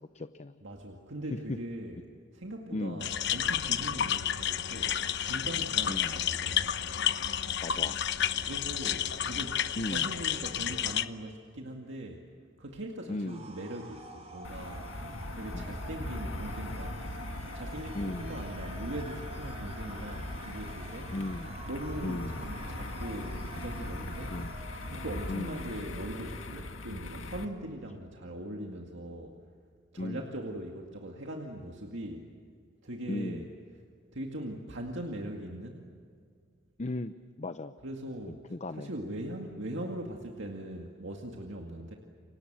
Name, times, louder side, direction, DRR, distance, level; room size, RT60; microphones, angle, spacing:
voice 1, 0.0-0.5 1.5-1.6 2.7-3.1 5.9-6.2 7.6-8.0 9.8-10.1 13.1-13.5 15.5-15.8 17.9-18.4 21.1-21.6 22.0-22.4 24.3-24.6 25.3-25.5 30.0-30.2 33.1-33.5 36.8-37.7 38.3-38.9, left 2 dB, 35° left, 11 dB, 0.7 m, -36 dB
voice 2, 0.6-2.0 2.3-4.9 5.2-6.8 8.4-12.2 12.6-14.9 15.3-17.1 17.5-21.1 21.7-24.4 24.9-29.4 29.9-32.2 32.8-33.5 34.1-35.9 37.8-38.4 38.7-41.9, right 1 dB, 65° right, 1 dB, 2.2 m, -40 dB
sound 1, 3.0-11.0, left 9 dB, 60° left, 0.9 m, -31 dB
sound 2, 13.3-26.8, right 2 dB, 35° right, 6.5 m, -48 dB
sound 3, 14.4-27.5, left 1 dB, 85° left, 2.0 m, -40 dB
29.5 x 25.0 x 7.6 m, 2.2 s
head